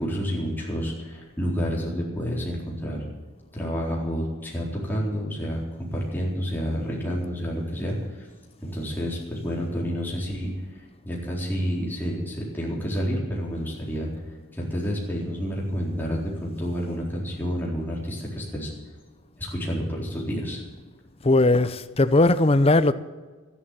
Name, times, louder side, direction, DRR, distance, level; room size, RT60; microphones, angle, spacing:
voice 1, 0.0-3.1 3.5-8.3 8.6-10.5 11.0-14.1 14.5-18.7 19.4-20.6, equal, 10° left, 4.2 m, -29 dB
voice 2, 21.2-22.9, left 2 dB, 25° left, 0.6 m, -18 dB
13.0 x 11.0 x 7.4 m
head